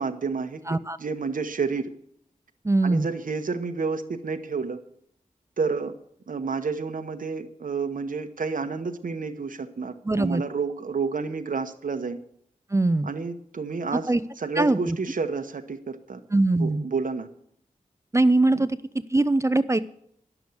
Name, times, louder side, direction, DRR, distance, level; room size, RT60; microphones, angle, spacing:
voice 1, 0.0-1.9 2.8-4.8 5.6-5.9 6.3-12.2 13.0-14.1 14.4-16.2 16.6-17.3 18.5-18.7, right 4 dB, 80° right, 7 dB, 1.0 m, -30 dB
voice 2, 0.7-1.0 2.6-3.1 10.0-10.4 12.7-13.1 13.9-14.2 14.6-15.0 16.3-16.8 18.1-19.8, right 2 dB, 20° right, 13 dB, 0.5 m, -22 dB
11.0 x 7.0 x 7.8 m, 0.68 s
wide cardioid pair, 80°, 14 cm